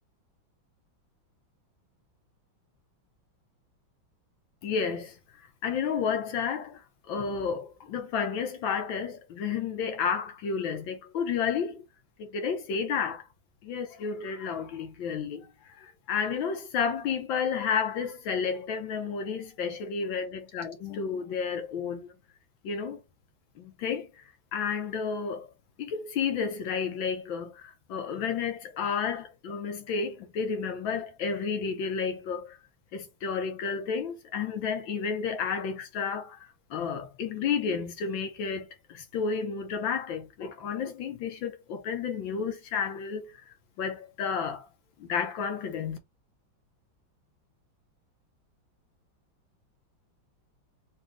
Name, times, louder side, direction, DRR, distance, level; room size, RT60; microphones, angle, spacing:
voice 1, 4.6-11.8 12.2-13.3 13.6-22.1 22.6-23.0 23.6-25.5 25.8-32.6 32.9-44.7 45.0-46.0, left 6 dB, 80° left, 1.7 m, -31 dB
4.1 x 2.8 x 3.5 m
omnidirectional pair, 2.1 m